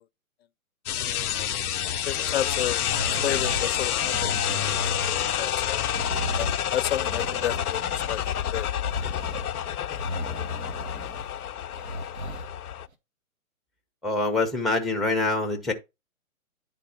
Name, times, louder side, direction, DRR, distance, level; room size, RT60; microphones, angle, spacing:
sound 1, 0.9-12.9, left 10 dB, 85° left, 0.6 m, -28 dB
voice 1, 2.1-2.8 3.2-4.3 5.2-5.8 6.4-8.2 8.5-8.7, left 11 dB, 45° left, 0.6 m, -31 dB
sound 2, 2.9-3.7 4.0-5.4 5.9-6.6 6.9-8.3 8.8-9.5 9.9-11.3 11.8-12.5 12.9-13.0, right 1 dB, 70° right, 2.0 m, -36 dB
voice 2, 14.0-15.7, left 3 dB, ahead, 0.7 m, -25 dB
10.0 x 4.2 x 4.1 m
hypercardioid pair, 135°, 43 cm